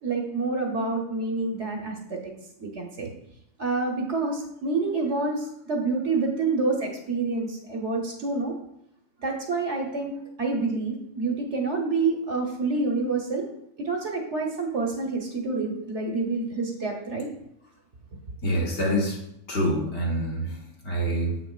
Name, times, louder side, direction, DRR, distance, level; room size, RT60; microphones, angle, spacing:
voice 1, 0.0-2.2 2.6-3.1 3.6-8.5 9.2-10.1 10.4-13.5 13.8-17.3, right 3 dB, 55° right, 1 dB, 1.1 m, -27 dB
voice 2, 18.4-19.2 19.5-20.6 20.8-21.3, equal, 50° left, -2 dB, 1.5 m, -26 dB
7.5 x 5.9 x 2.4 m, 0.77 s
omnidirectional pair, 1.6 m